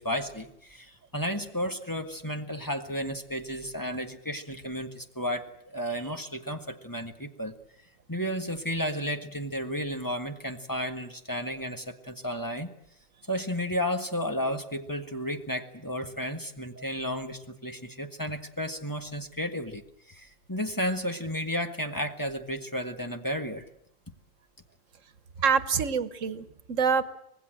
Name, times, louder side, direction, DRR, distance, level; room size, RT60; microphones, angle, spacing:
voice 1, 0.0-7.5 8.1-12.7 13.3-23.7 25.4-25.6, equal, 15° left, 5 dB, 1.6 m, -33 dB
voice 2, 25.4-27.0, right 6 dB, 80° right, 13 dB, 1.5 m, -26 dB
25.0 x 19.5 x 7.8 m, 0.76 s
omnidirectional pair, 1.3 m